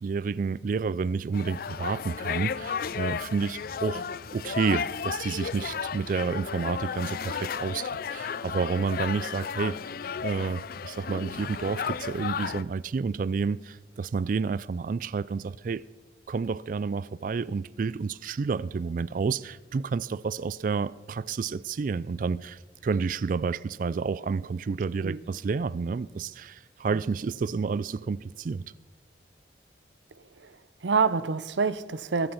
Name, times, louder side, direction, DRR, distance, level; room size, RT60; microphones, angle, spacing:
voice 1, 0.0-4.0 4.3-9.8 10.2-15.9 16.3-28.6, right 5 dB, 45° right, 0.3 m, -30 dB
sound 1, 1.3-12.6, left 6 dB, 55° left, 0.4 m, -34 dB
voice 2, 30.4-32.3, right 5 dB, 85° right, 0.6 m, -27 dB
22.5 x 7.9 x 5.6 m
head